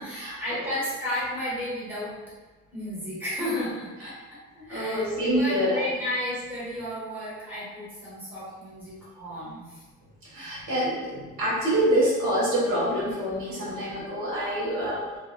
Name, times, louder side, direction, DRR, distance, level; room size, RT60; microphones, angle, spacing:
voice 1, 0.0-2.1 2.7-4.1 4.5-9.8 10.3-10.6, left 1 dB, 5° right, -10 dB, 1.3 m, -33 dB
voice 2, 4.7-5.8 10.3-15.0, equal, 75° right, -8 dB, 1.3 m, -26 dB
2.8 x 2.4 x 2.3 m, 1.2 s
cardioid pair, 115°, 30 cm